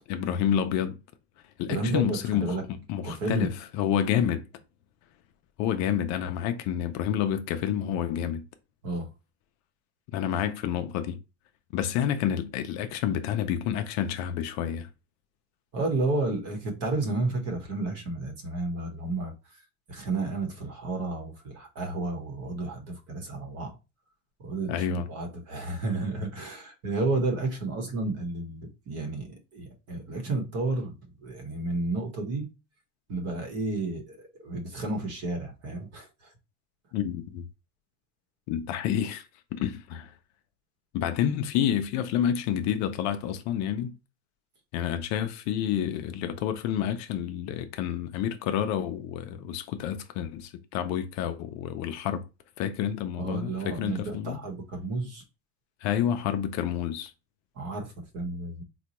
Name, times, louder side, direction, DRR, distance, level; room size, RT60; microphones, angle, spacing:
voice 1, 0.1-1.0 1.6-2.6 2.9-4.4 5.6-8.4 10.1-11.2 11.7-14.9 24.7-25.1 36.9-37.5 38.5-39.3 39.5-40.1 40.9-43.9 44.7-52.2 52.6-54.4 55.8-57.1, left 9 dB, 50° left, 0.4 m, -29 dB
voice 2, 1.7-2.6 3.0-3.5 8.8-9.1 15.7-19.6 19.9-23.7 24.4-32.5 33.1-36.3 53.2-55.2 57.5-58.6, right 2 dB, 40° right, 1.0 m, -31 dB
4.1 x 2.2 x 2.9 m
supercardioid pair, 140°, 37 cm